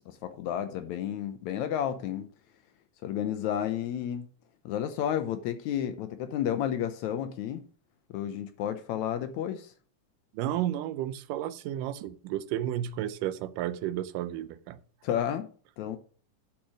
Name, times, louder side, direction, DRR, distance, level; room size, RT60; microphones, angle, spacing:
voice 1, 0.1-2.3 3.0-4.3 4.6-7.6 8.1-9.7 15.0-15.5 15.8-16.0, left 10 dB, 75° left, 1.8 m, -31 dB
voice 2, 10.3-14.8, right 12 dB, 85° right, 2.3 m, -32 dB
10.5 x 4.4 x 6.2 m
omnidirectional pair, 3.7 m